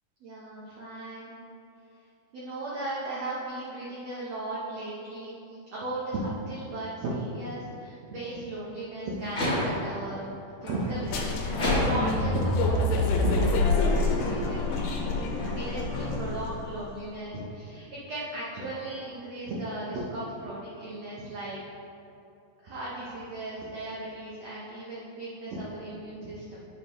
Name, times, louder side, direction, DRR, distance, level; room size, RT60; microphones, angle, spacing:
voice 1, 0.2-1.3 2.3-10.3 10.6-11.3 11.6-14.6 15.4-21.6 22.6-26.7, right 1 dB, 70° right, -7 dB, 1.7 m, -36 dB
sound 1, 9.2-10.0 10.6-12.3 13.0-16.5, left 1 dB, 45° left, 0.9 m, -33 dB
sound 2, 11.1-16.6, left 2 dB, 85° left, 2.3 m, -27 dB
9.6 x 5.2 x 3.0 m, 2.7 s
omnidirectional pair, 3.9 m